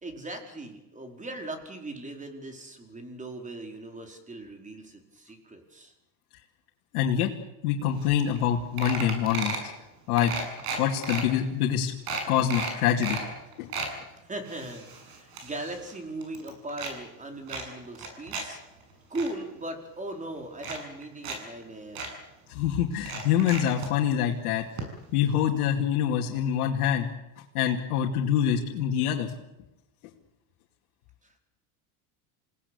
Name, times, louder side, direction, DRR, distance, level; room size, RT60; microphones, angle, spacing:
voice 1, 0.0-5.9 14.2-18.6 19.1-22.1 31.2-31.4, right 2 dB, 15° right, 4 dB, 4.8 m, -39 dB
voice 2, 6.9-7.3 7.6-9.6 10.1-10.3 10.8-11.9 12.3-13.2 13.6-13.7 22.5-24.6 25.1-27.1 27.5-29.3, left 9 dB, 85° left, -1 dB, 2.6 m, -25 dB
sound 1, 8.1-8.2 8.4-8.5 8.8-9.7 10.2-11.2 11.7-11.8 12.1-13.3 13.5-13.9 14.5-16.9 17.5-18.5 18.8-19.3 20.1-20.2 20.6-21.4 21.6-21.7 22.0-22.1 23.0-23.9 24.8-24.9 25.2-25.3, right 4 dB, 55° right, 7.9 m, -34 dB
28.0 x 18.0 x 8.4 m, 0.96 s
supercardioid pair, 120°, 44 cm